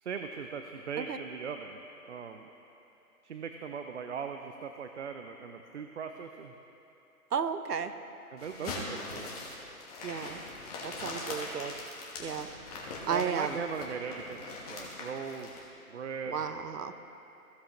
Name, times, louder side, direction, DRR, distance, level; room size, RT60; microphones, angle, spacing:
voice 1, 0.0-1.8 2.1-2.5 3.2-6.5 8.3-9.3 13.1-14.4 14.7-15.5 15.9-16.4, right 6 dB, 50° right, 6 dB, 0.5 m, -39 dB
voice 2, 7.3-7.9 10.0-10.4 10.8-11.8 12.2-12.5 13.1-13.6 16.3-16.9, right 6 dB, 85° right, 10 dB, 0.8 m, -33 dB
sound 1, 8.4-15.6, left 2 dB, 25° left, 1.2 m, -41 dB
15.5 x 7.1 x 3.0 m, 3.0 s
hypercardioid pair, 155°, 46 cm